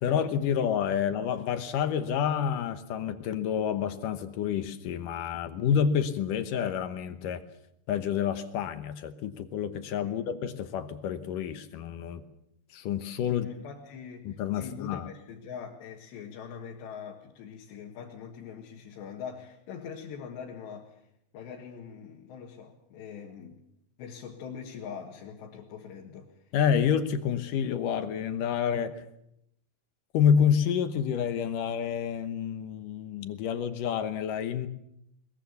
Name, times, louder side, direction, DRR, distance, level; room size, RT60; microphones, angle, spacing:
voice 1, 0.0-7.4 7.9-12.2 12.7-13.5 14.2-15.1 26.5-29.0 30.1-34.7, left 8 dB, 70° left, 10 dB, 2.2 m, -28 dB
voice 2, 13.3-21.1 21.3-23.6 24.0-26.5, left 7 dB, 85° left, -1 dB, 4.0 m, -43 dB
22.0 x 21.5 x 7.0 m, 0.78 s
omnidirectional pair, 4.9 m